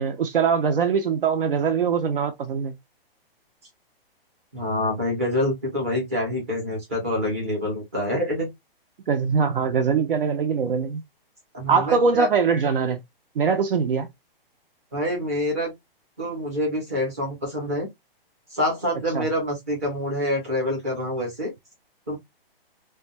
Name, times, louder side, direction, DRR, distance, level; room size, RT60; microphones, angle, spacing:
voice 1, 0.0-2.7 9.1-11.0 11.7-13.0 13.4-14.1 19.1-19.3, right 6 dB, 65° right, 0.6 m, -22 dB
voice 2, 4.5-8.5 11.5-12.3 14.9-15.7 16.2-17.9 18.5-21.5 22.1-22.2, left 1 dB, 15° right, 0.6 m, -26 dB
2.2 x 2.2 x 2.7 m
hypercardioid pair, 180°, 30 cm